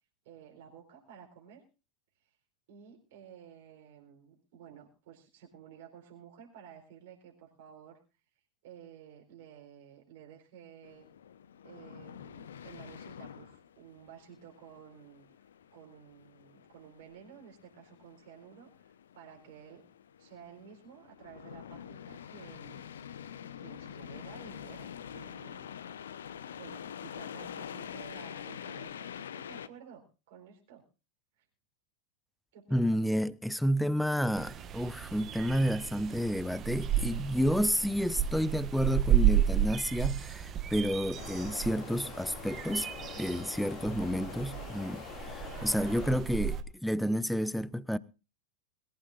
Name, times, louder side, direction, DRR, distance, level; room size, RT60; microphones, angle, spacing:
voice 1, 0.2-1.6 2.2-2.3 2.7-8.0 8.6-11.1 11.6-15.3 15.7-19.9 20.2-22.9 23.6-25.7 26.5-30.8 31.4-31.5 32.5-33.0, right 8 dB, 50° right, 4.2 m, -53 dB
sound 1, 10.8-29.7, left 8 dB, 65° left, 0.9 m, -46 dB
voice 2, 32.7-42.9 43.2-48.0, equal, ahead, 0.6 m, -30 dB
sound 2, 34.4-46.6, right 10 dB, 30° right, 1.5 m, -32 dB
sound 3, 41.1-46.2, left 10 dB, 40° left, 2.3 m, -45 dB
22.5 x 15.0 x 2.5 m
figure-of-eight pair, 90°, 0 cm